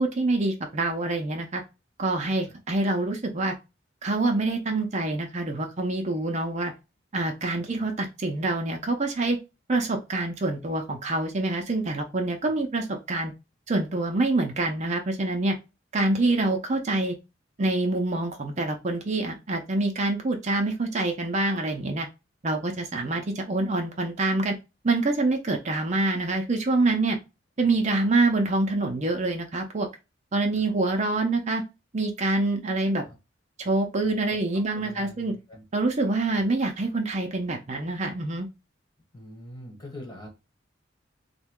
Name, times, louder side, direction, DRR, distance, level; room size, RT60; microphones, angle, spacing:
voice 1, 0.0-1.6 2.0-3.5 4.0-6.7 7.1-9.4 9.7-13.3 13.7-15.5 15.9-17.1 17.6-22.1 22.4-24.5 24.8-27.2 27.6-29.9 30.3-31.6 31.9-33.0 33.6-35.3 35.7-38.5, right 2 dB, 40° right, 3 dB, 0.5 m, -26 dB
voice 2, 7.6-7.9 12.5-12.6 27.6-27.8 30.6-30.7 33.0-33.2 34.0-34.4 34.7-35.6 36.3-36.4 39.1-40.3, left 1 dB, 20° left, 0 dB, 1.2 m, -45 dB
3.4 x 2.2 x 3.5 m, 0.26 s
head